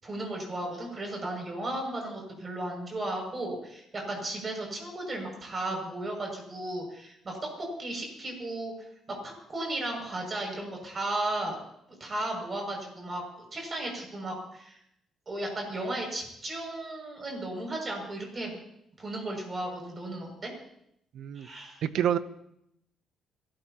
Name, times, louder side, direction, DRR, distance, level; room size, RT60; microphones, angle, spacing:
voice 1, 0.0-8.7 9.1-11.6 11.9-14.8 15.3-18.6 19.0-20.5 21.3-21.8, right 1 dB, 35° right, 1 dB, 6.7 m, -35 dB
voice 2, 21.1-21.5 21.8-22.2, right 10 dB, 75° right, 13 dB, 0.8 m, -27 dB
30.0 x 13.0 x 3.0 m, 0.75 s
cardioid pair, 90°, 0 cm